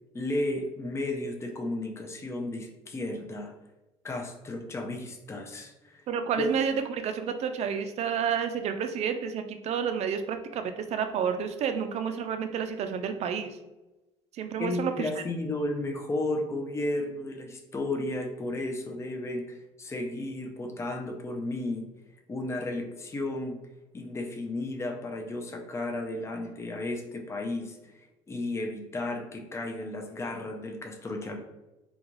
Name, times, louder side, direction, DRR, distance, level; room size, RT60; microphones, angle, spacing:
voice 1, 0.1-3.5 4.0-6.0 6.4-6.6 14.6-21.9 22.3-23.6 23.9-27.8 28.3-31.4, left 2 dB, 20° left, 3 dB, 0.5 m, -33 dB
voice 2, 6.1-13.6 14.3-15.1, right 7 dB, 55° right, 8 dB, 0.4 m, -30 dB
2.4 x 2.3 x 3.0 m, 1.0 s
supercardioid pair, 85°, 13 cm